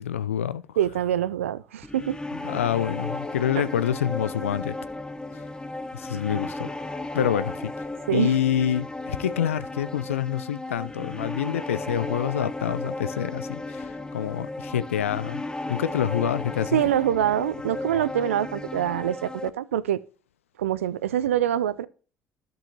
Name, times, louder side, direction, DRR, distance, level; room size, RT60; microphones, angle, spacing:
voice 1, 0.0-0.6 2.4-4.7 5.3-5.4 5.9-6.7 7.1-7.7 8.1-15.4 15.7-16.8, left 10 dB, 80° left, 0.4 m, -27 dB
voice 2, 0.8-2.2 2.5-2.6 3.5-3.7 8.1-8.4 16.7-20.0 20.6-21.9, right 11 dB, 75° right, 0.5 m, -25 dB
sound 1, 1.8-19.5, left 2 dB, 10° left, 0.8 m, -34 dB
15.5 x 5.4 x 2.8 m
figure-of-eight pair, 55°, 7 cm